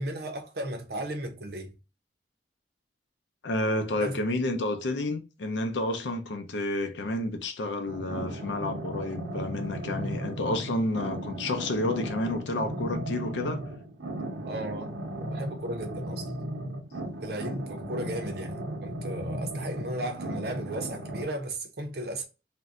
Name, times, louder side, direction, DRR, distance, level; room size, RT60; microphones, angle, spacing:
voice 1, 0.0-1.7 3.9-4.2 14.4-16.3 17.2-22.2, right 1 dB, 60° right, 0.7 m, -35 dB
voice 2, 3.4-13.6 18.0-18.2, left 1 dB, 85° left, 0.6 m, -30 dB
sound 1, 7.9-21.2, right 1 dB, 85° right, 0.9 m, -36 dB
2.6 x 2.1 x 3.6 m
head